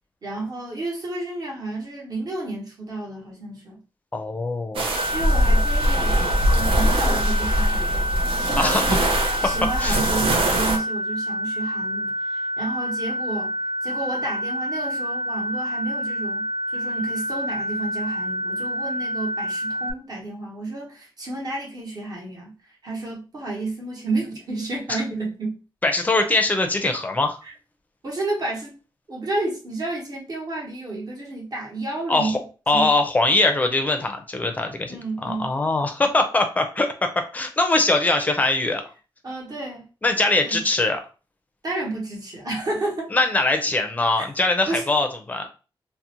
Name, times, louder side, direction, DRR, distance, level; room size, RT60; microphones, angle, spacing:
voice 1, 0.2-3.8 5.1-6.2 6.5-8.1 8.4-9.1 9.4-13.5 13.8-16.5 16.7-22.5 22.8-25.6 27.4-27.5 28.0-28.7 29.1-32.4 32.7-32.9 34.9-35.5 39.2-39.8 40.4-40.6 41.6-43.1 44.2-44.3 44.7-44.8, right 2 dB, 45° right, -2 dB, 1.0 m, -31 dB
voice 2, 4.1-4.8 8.6-9.1 9.8-10.0 24.9-25.0 25.8-27.4 32.1-32.4 32.7-38.8 40.0-41.0 43.1-45.5, left 2 dB, 20° left, 5 dB, 0.4 m, -22 dB
sound 1, 4.8-10.8, right 1 dB, 90° right, 0.5 m, -22 dB
sound 2, 5.0-19.9, left 1 dB, 75° left, 0.4 m, -28 dB
2.5 x 2.0 x 2.9 m, 0.34 s
wide cardioid pair, 145°, 9 cm